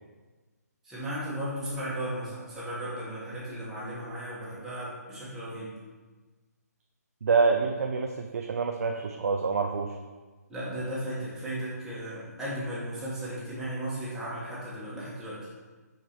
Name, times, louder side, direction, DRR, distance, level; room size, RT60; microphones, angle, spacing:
voice 1, 0.8-5.7 10.5-15.4, right 1 dB, 5° right, -10 dB, 1.5 m, -35 dB
voice 2, 7.2-9.9, right 4 dB, 60° right, 4 dB, 0.4 m, -26 dB
4.9 x 4.5 x 4.4 m, 1.3 s
figure-of-eight pair, 145°, 9 cm